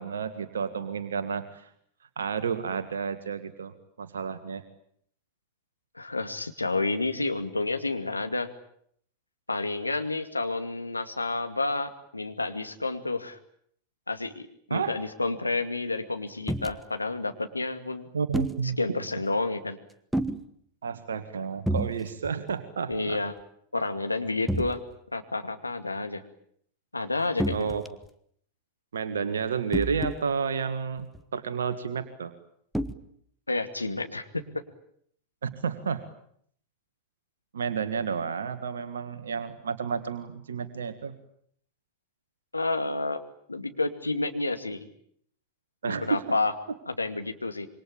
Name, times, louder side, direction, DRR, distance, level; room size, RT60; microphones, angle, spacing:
voice 1, 0.0-1.7 2.2-3.7 4.0-4.6 14.7-14.9 18.1-19.0 20.8-23.2 27.5-27.8 28.9-32.3 35.4-36.0 37.5-41.1 45.8-46.2, right 6 dB, 70° right, 11 dB, 1.8 m, -31 dB
voice 2, 5.9-8.5 9.5-13.4 14.1-18.1 18.8-19.8 22.9-23.3 23.7-24.8 25.1-26.2 26.9-27.7 33.5-34.4 42.5-43.2 43.5-44.8 45.8-46.5 46.9-47.7, left 3 dB, 80° left, 7 dB, 2.4 m, -30 dB
sound 1, 16.5-16.7 18.3-18.6 20.1-20.4 21.7-22.0 22.2-22.5 22.9-23.0 24.5-24.7 27.4-28.1 29.7-30.2 31.1-31.2 32.7-32.9, right 1 dB, 5° right, 1.4 m, -29 dB
27.0 x 24.0 x 8.9 m, 0.67 s
figure-of-eight pair, 90°, 0 cm